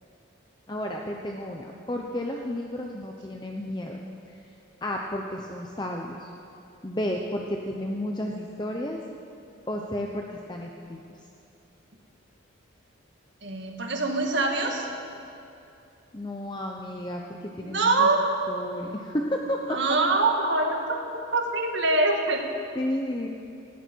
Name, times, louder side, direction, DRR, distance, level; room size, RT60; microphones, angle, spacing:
voice 1, 0.7-4.0 4.3-4.4 4.8-6.3 6.8-9.0 9.7-11.2 16.1-18.1 18.5-20.0 22.7-23.3, left 1 dB, 20° left, 0 dB, 0.8 m, -32 dB
voice 2, 13.4-14.9 17.6-18.2 19.7-20.8 21.3-22.5, right 3 dB, 60° right, 2 dB, 1.8 m, -24 dB
18.5 x 16.5 x 4.6 m, 2.7 s
head